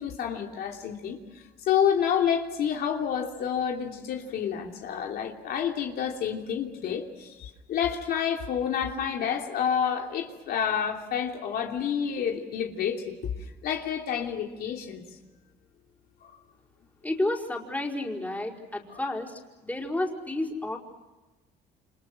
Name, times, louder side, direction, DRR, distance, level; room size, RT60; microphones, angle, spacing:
voice 1, 0.0-13.3 13.6-15.0 16.2-16.3 18.9-19.0, left 8 dB, 65° left, 2 dB, 3.1 m, -29 dB
voice 2, 17.0-20.8, left 1 dB, 10° left, 0 dB, 4.9 m, -31 dB
29.0 x 27.5 x 6.4 m, 1.2 s
cardioid pair, 110°, 17 cm